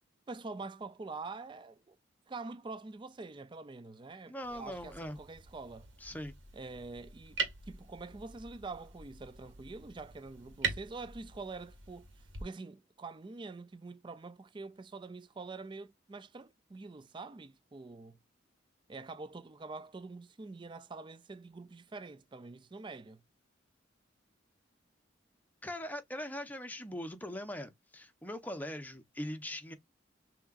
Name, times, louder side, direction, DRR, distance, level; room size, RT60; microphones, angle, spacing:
voice 1, 0.3-2.0 2.3-5.9 6.5-7.4 7.7-12.1 12.4-18.2 18.9-23.2, right 3 dB, 25° right, 0.4 m, -45 dB
voice 2, 4.3-5.2 6.0-6.4 25.6-29.7, left 1 dB, 10° left, 0.8 m, -41 dB
sound 1, 4.4-12.4, right 4 dB, 85° right, 1.7 m, -43 dB
6.3 x 3.0 x 2.4 m
head